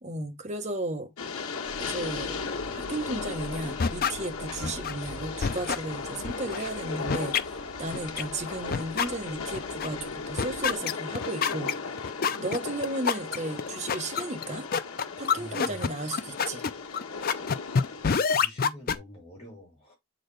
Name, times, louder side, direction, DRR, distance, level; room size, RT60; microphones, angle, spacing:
voice 1, 0.0-1.1 1.8-2.4 2.7-7.4 7.8-11.7 12.4-14.7 15.2-16.6, right 2 dB, 35° right, 1.0 m, -34 dB
Train, 1.2-18.1, left 4 dB, 90° left, 1.2 m, -36 dB
sound 1, 1.6-10.8, equal, 55° right, 1.2 m, -48 dB
sound 2, 3.8-4.1 4.6-4.9 5.4-5.8 6.2-6.6 7.1-7.4 7.9-8.2 8.7-9.1 9.5-9.9 10.4-19.0, left 6 dB, 45° left, 0.5 m, -26 dB
voice 2, 15.3-15.9 18.1-19.9, equal, 30° left, 3.1 m, -46 dB
7.7 x 4.0 x 3.2 m
head